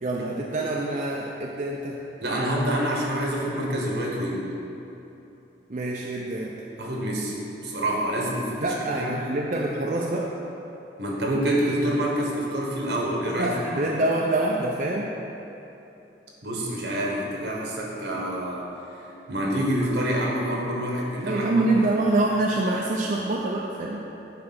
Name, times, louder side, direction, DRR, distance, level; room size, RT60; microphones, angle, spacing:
voice 1, 0.0-2.0 5.7-6.6 8.6-10.3 13.4-15.2 21.2-24.1, right 2 dB, 45° right, -2 dB, 0.5 m, -26 dB
voice 2, 2.2-4.5 6.8-7.4 7.6-9.1 11.0-13.5 16.4-18.6 19.3-21.8, right 1 dB, 75° right, -2 dB, 1.4 m, -27 dB
9.6 x 3.2 x 5.9 m, 3.0 s
head